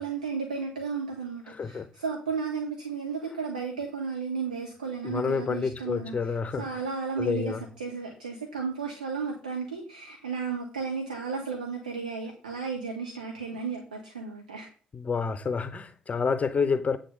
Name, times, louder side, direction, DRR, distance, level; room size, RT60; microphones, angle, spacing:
voice 1, 0.0-6.1 6.6-14.7, right 5 dB, 80° right, 1.1 m, -34 dB
voice 2, 1.5-1.9 5.0-6.8 7.2-7.6 14.9-17.0, left 5 dB, 35° left, 0.7 m, -29 dB
8.4 x 3.9 x 6.7 m
figure-of-eight pair, 45°, 4 cm